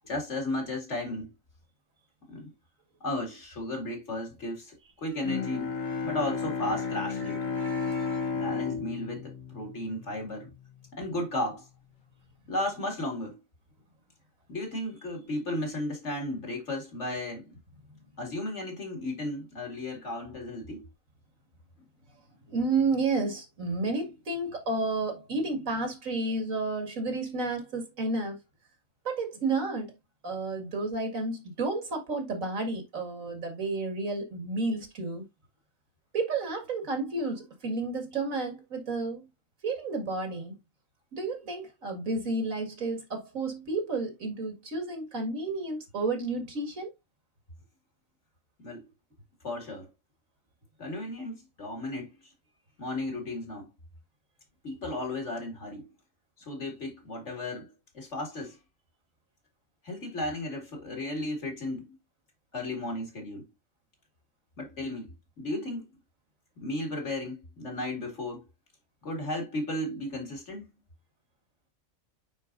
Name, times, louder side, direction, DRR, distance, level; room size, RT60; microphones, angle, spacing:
voice 1, 0.1-1.3 2.3-2.5 3.0-5.8 6.0-7.5 8.3-10.5 10.9-11.7 12.5-13.4 14.5-17.5 18.2-20.9 48.6-48.9 49.4-49.9 50.8-52.3 52.8-53.7 54.6-55.9 56.4-58.6 59.8-61.9 62.5-63.5 64.6-65.9 66.6-68.4 69.0-70.7, left 1 dB, 60° left, 2.7 m, -34 dB
Bowed string instrument, 5.2-10.5, left 5 dB, 75° left, 1.4 m, -33 dB
voice 2, 7.2-8.4 22.5-28.4 29.0-29.9 30.2-35.3 36.1-39.2 39.6-40.6 41.1-46.9, right 3 dB, 85° right, 2.5 m, -31 dB
9.0 x 4.3 x 2.6 m
omnidirectional pair, 1.4 m